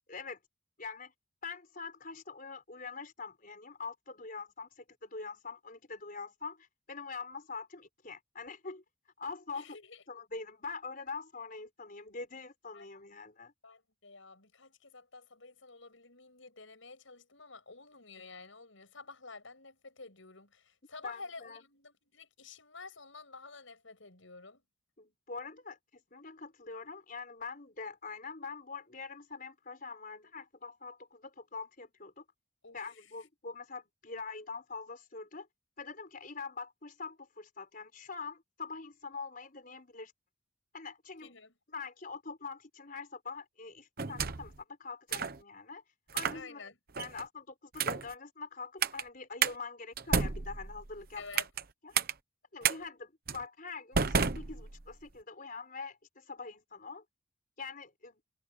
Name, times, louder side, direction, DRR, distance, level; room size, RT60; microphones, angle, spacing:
voice 1, 0.1-0.4 0.8-1.1 1.4-8.8 9.2-9.8 10.1-13.5 21.0-21.6 25.0-25.8 26.1-32.2 32.7-35.5 35.8-40.1 40.7-41.3 41.7-44.5 44.8-45.8 46.1-46.7 47.0-51.2 51.8-51.9 52.5-57.0 57.6-58.2, left 4 dB, 45° left, 4.7 m, -44 dB
voice 2, 9.5-10.0 12.7-12.9 13.6-24.6 32.6-33.1 41.2-41.5 46.3-46.8 51.2-51.5, left 4 dB, 75° left, 6.6 m, -50 dB
sound 1, 44.0-44.6 45.1-45.4 46.1-46.4 46.9-47.2 47.7-48.1 48.8-49.0 49.4-49.5 50.0-51.6 51.9-52.1 52.6-52.8 53.3-53.4 53.9-55.0, right 6 dB, 45° right, 1.0 m, -31 dB
head